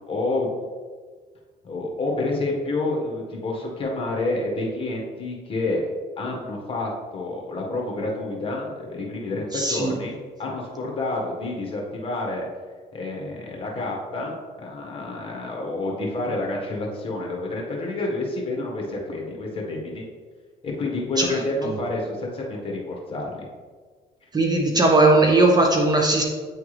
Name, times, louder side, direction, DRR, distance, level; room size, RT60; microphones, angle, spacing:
voice 1, 0.1-0.5 1.6-5.9 6.2-12.5 12.9-14.3 14.6-20.0 20.6-23.5, left 2 dB, 30° left, -1 dB, 1.6 m, -28 dB
voice 2, 9.5-9.9 21.2-21.4 24.3-26.2, right 2 dB, 25° right, 2 dB, 0.7 m, -18 dB
8.7 x 3.5 x 3.3 m, 1.5 s
cardioid pair, 110°, 17 cm